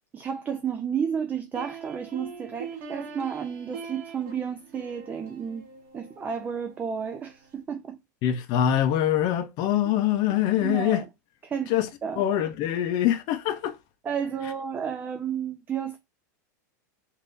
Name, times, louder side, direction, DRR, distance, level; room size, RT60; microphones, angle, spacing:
voice 1, 0.1-5.7 5.9-8.0 10.6-11.1 11.4-11.7 12.0-12.2 14.0-16.0, right 7 dB, 15° right, 0.3 m, -32 dB
sound 1, 1.5-7.6, right 5 dB, 55° right, 1.0 m, -43 dB
voice 2, 8.2-11.0 11.7-11.9 12.2-13.7, left 11 dB, 45° left, 0.6 m, -24 dB
3.5 x 2.6 x 2.5 m
supercardioid pair, 130°, 10 cm